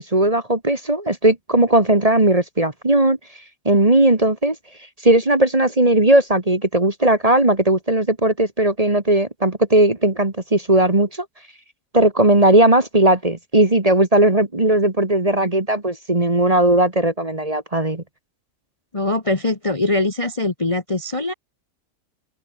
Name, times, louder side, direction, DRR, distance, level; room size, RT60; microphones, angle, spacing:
voice 1, 0.0-3.2 3.7-4.6 5.0-11.3 11.9-18.0, right 1 dB, 20° right, 1.8 m, -17 dB
voice 2, 18.9-21.3, left 2 dB, 20° left, 1.3 m, -22 dB
omnidirectional pair, 1.8 m